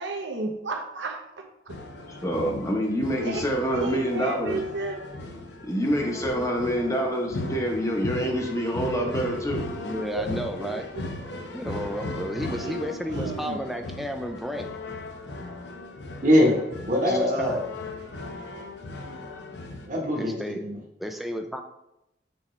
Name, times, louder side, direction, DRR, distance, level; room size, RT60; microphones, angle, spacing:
voice 1, 0.0-1.8 3.2-3.4 3.7-5.0 10.1-10.2 11.0-11.1 12.5-13.6, right 3 dB, 80° right, 3 dB, 0.9 m, -33 dB
sound 1, 1.7-19.9, left 2 dB, 70° left, 0.7 m, -37 dB
voice 2, 2.1-4.6 5.6-9.7 17.0-17.2, equal, 15° left, 0 dB, 0.9 m, -27 dB
voice 3, 9.8-10.9 11.5-14.7 17.1-17.6 20.2-20.6 21.0-21.6, equal, ahead, 4 dB, 0.3 m, -32 dB
voice 4, 16.2-17.6 19.9-20.8, left 1 dB, 45° right, -1 dB, 1.1 m, -22 dB
7.1 x 4.2 x 3.2 m, 0.86 s
head